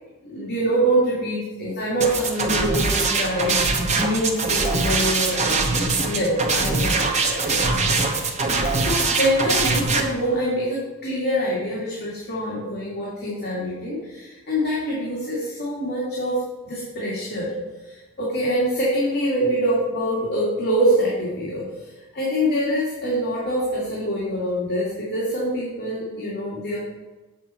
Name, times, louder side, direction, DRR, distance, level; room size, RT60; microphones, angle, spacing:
voice 1, 0.2-5.5 5.7-17.5 17.9-21.7 22.1-26.8, equal, 45° left, -7 dB, 2.3 m, -25 dB
sound 1, 2.0-10.0, right 3 dB, 30° right, 1.0 m, -22 dB
8.2 x 7.3 x 4.3 m, 1.2 s
head